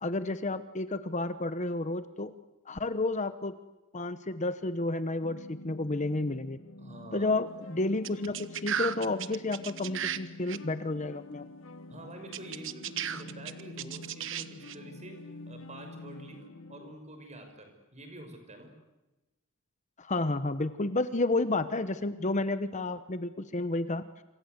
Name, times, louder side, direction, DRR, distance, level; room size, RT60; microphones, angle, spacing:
voice 1, 0.0-2.3 2.7-3.5 3.9-6.6 7.1-11.4 20.0-24.0, left 2 dB, 35° left, 12 dB, 1.0 m, -31 dB
sound 1, 5.2-16.9, left 2 dB, 70° left, 1.2 m, -48 dB
voice 2, 6.8-7.3 11.9-16.4 16.7-18.7, right 1 dB, 35° right, 6 dB, 6.2 m, -47 dB
sound 2, 8.0-10.2 10.5-10.6 12.3-14.8, right 9 dB, 65° right, 1.2 m, -34 dB
27.0 x 26.5 x 8.2 m, 1.0 s
head